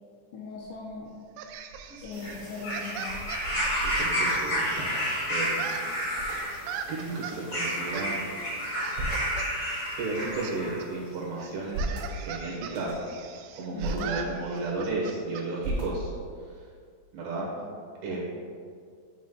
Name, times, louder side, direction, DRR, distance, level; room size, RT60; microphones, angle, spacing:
voice 1, 0.3-1.2 2.0-3.2 13.7-14.2 18.1-18.2, left 4 dB, 80° left, -2 dB, 2.6 m, -40 dB
sound 1, 0.6-1.0 1.5-5.2 5.5-5.6 5.8-6.4 7.1-8.2 8.6-9.4 9.9-10.9 11.4-12.1 12.6-13.1 13.6-14.0 14.5-15.1 15.6-16.3, right 2 dB, 50° right, 2.3 m, -38 dB
sound 2, 1.4-5.1 5.4-7.4 7.9-8.1 8.8-9.5 9.8-10.6 10.8-10.9 11.4-15.5, right 7 dB, 90° right, 3.2 m, -40 dB
sound 3, 2.1-10.8 11.7-11.8, equal, 65° left, 1.0 m, -31 dB
voice 2, 3.8-4.9 5.3-6.1 6.9-8.2 10.0-11.9 12.2-12.9 13.6-16.1 17.1-17.5 18.0-18.2, right 3 dB, 70° right, -4 dB, 2.8 m, -33 dB
9.2 x 7.7 x 2.2 m, 2.1 s
omnidirectional pair, 5.6 m